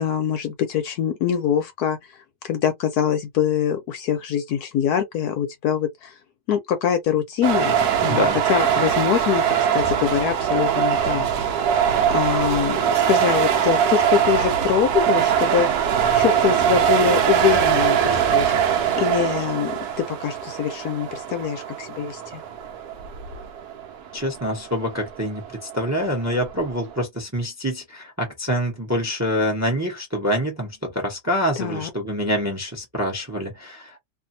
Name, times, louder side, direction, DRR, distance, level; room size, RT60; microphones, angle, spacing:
voice 1, 0.0-2.0 2.4-6.1 6.5-7.8 8.0-9.4 9.7-11.5 12.1-15.7 16.1-19.8 20.1-22.4 31.6-31.9, left 9 dB, 70° left, 1.0 m, -24 dB
sound 1, 7.4-27.0, right 8 dB, 70° right, 1.1 m, -22 dB
voice 2, 8.1-8.4 24.1-34.0, equal, 15° right, 0.7 m, -26 dB
2.7 x 2.6 x 2.7 m
omnidirectional pair, 1.9 m